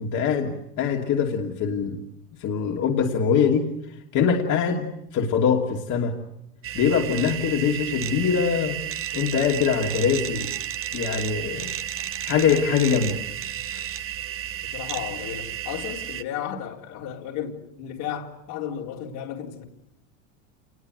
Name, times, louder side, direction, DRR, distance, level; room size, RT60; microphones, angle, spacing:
voice 1, 0.0-2.0 2.4-3.7 4.1-4.9 5.1-6.2 6.7-8.8 9.1-10.5 10.9-11.7 12.2-13.2 13.7-13.9, left 6 dB, 45° left, 2.8 m, -23 dB
sound 1, 6.6-16.2, right 11 dB, 30° right, 1.2 m, -32 dB
voice 2, 14.6-19.6, left 9 dB, 65° left, 4.0 m, -34 dB
28.0 x 20.5 x 7.9 m
supercardioid pair, 110°, 40 cm